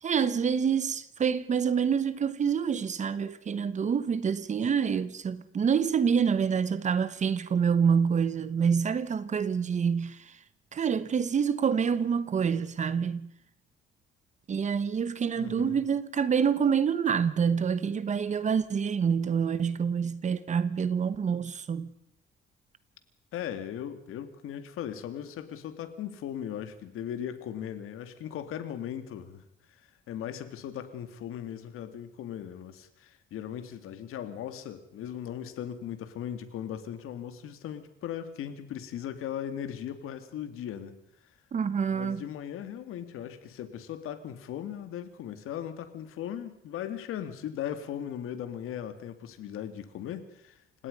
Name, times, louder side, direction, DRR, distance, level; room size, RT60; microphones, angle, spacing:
voice 1, 0.0-10.4 10.7-13.3 14.5-21.9 41.5-42.2, right 6 dB, 35° right, 1.1 m, -27 dB
voice 2, 15.4-15.8 23.3-29.4 29.7-40.9 41.9-50.9, left 10 dB, 90° left, 2.4 m, -38 dB
28.5 x 17.5 x 5.4 m
cardioid pair, 165°, 21 cm